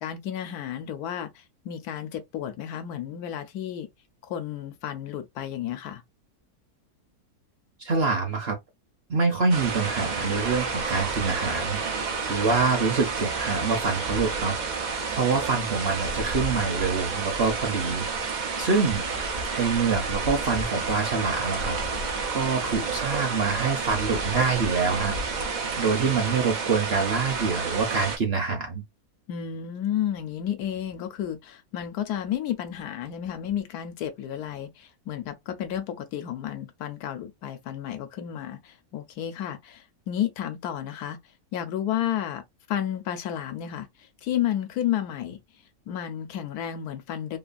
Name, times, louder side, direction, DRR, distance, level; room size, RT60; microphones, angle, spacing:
voice 1, 0.0-3.9 4.2-6.0 29.3-41.2 41.5-42.4 42.7-43.9 44.2-45.4 45.9-47.4, left 10 dB, 85° left, 1.1 m, -31 dB
voice 2, 7.8-8.5 9.1-18.1 18.4-19.0 19.6-21.8 22.3-25.2 25.4-28.8, right 4 dB, 55° right, 0.7 m, -26 dB
sound 1, 9.5-28.2, right 4 dB, 85° right, 0.4 m, -30 dB
3.0 x 2.3 x 2.5 m
omnidirectional pair, 1.6 m